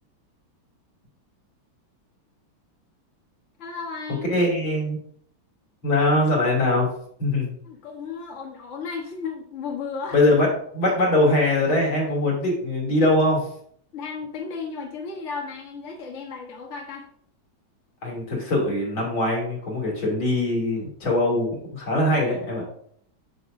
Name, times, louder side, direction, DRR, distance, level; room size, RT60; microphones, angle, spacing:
voice 1, 3.6-4.3 7.6-10.2 13.9-17.1, left 5 dB, 40° left, 0 dB, 1.3 m, -34 dB
voice 2, 4.3-5.0 5.8-6.9 7.2-7.5 10.1-10.5 10.7-13.4 18.0-22.6, left 1 dB, 80° left, -4 dB, 3.7 m, -22 dB
7.9 x 7.5 x 2.6 m, 0.64 s
omnidirectional pair, 2.2 m